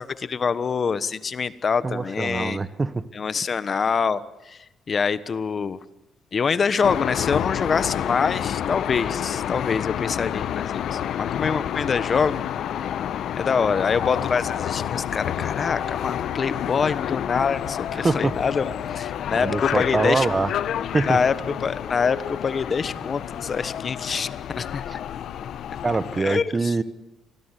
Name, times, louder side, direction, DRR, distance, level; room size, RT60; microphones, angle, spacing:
voice 1, 0.0-2.7 3.1-4.6 4.9-5.8 6.3-12.4 13.4-20.3 21.1-21.3 21.6-24.8 26.2-26.7, left 5 dB, 45° left, 15 dB, 1.2 m, -25 dB
voice 2, 1.8-3.0 17.9-18.4 19.3-20.5 20.9-21.2 24.9-25.0 25.8-26.8, right 3 dB, 25° right, 14 dB, 1.4 m, -24 dB
sound 1, 6.8-26.2, left 10 dB, 70° left, 1.2 m, -29 dB
26.0 x 19.5 x 10.0 m, 1.0 s
cardioid pair, 90°, 0 cm